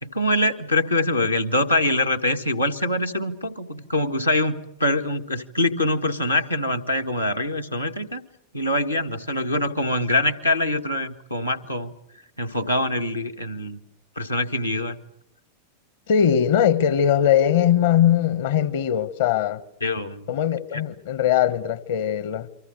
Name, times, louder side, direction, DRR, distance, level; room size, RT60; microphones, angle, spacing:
voice 1, 0.0-8.2 8.5-11.9 12.4-13.8 14.1-15.0 19.8-20.3 20.7-20.8, left 1 dB, 85° left, 1.6 m, -24 dB
voice 2, 16.1-19.6 20.3-22.5, left 9 dB, 55° left, 1.2 m, -20 dB
29.5 x 24.5 x 6.6 m
figure-of-eight pair, 90°, 0 cm